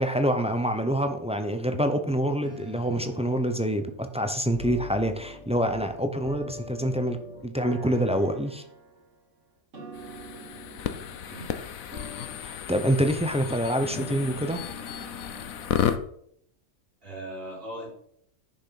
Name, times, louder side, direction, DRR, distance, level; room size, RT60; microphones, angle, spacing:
voice 1, 0.0-7.2 7.4-8.6 12.4-14.6, equal, 5° right, 6 dB, 0.7 m, -26 dB
sound 1, 2.4-3.5 4.5-5.9 6.2-9.1 9.7-11.7 11.9-12.8 13.8-15.9, equal, 60° right, 2.8 m, -44 dB
sound 2, 9.9-16.0, left 9 dB, 75° left, 1.2 m, -33 dB
voice 2, 13.8-14.3 17.0-17.9, right 1 dB, 40° right, -4 dB, 4.7 m, -39 dB
10.5 x 6.0 x 5.9 m, 0.69 s
omnidirectional pair, 1.5 m